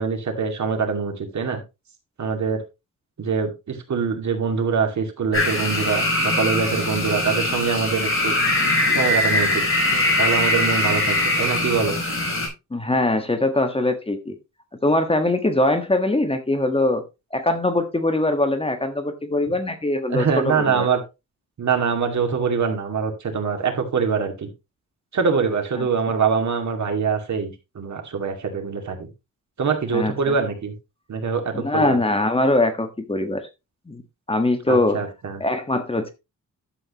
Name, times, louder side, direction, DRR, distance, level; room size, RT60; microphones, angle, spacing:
voice 1, 0.0-1.6 2.2-2.6 3.2-8.3 8.9-9.6 9.9-12.0 20.1-21.0 21.6-24.5 25.1-29.1 29.6-30.7 31.1-32.0 34.7-35.4, right 5 dB, 65° right, 4 dB, 2.4 m, -24 dB
sound 1, 5.3-12.5, left 1 dB, 40° left, 4.8 m, -22 dB
voice 2, 12.7-14.3 14.8-17.0 17.3-20.9 25.8-25.9 29.9-30.3 31.5-33.5 33.9-34.0 34.3-35.0 35.4-36.1, left 2 dB, 20° left, 7 dB, 1.4 m, -22 dB
11.5 x 7.7 x 3.0 m, 0.25 s
wide cardioid pair, 115°, 31 cm